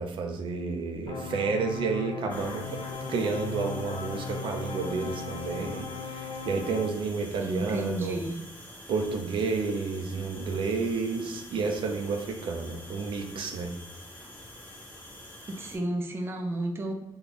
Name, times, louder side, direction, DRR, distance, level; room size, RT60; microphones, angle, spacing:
voice 1, 0.0-2.8 3.1-8.2 8.9-13.7, right 4 dB, 80° right, 3 dB, 0.5 m, -31 dB
sound 1, 1.1-6.9, left 4 dB, 65° left, 0.6 m, -37 dB
sound 2, 2.3-15.8, left 1 dB, 20° left, 0.9 m, -47 dB
voice 2, 7.4-8.4 15.5-16.9, right 1 dB, 25° right, 3 dB, 0.5 m, -32 dB
3.4 x 2.3 x 3.9 m, 0.91 s
wide cardioid pair, 145°, 9 cm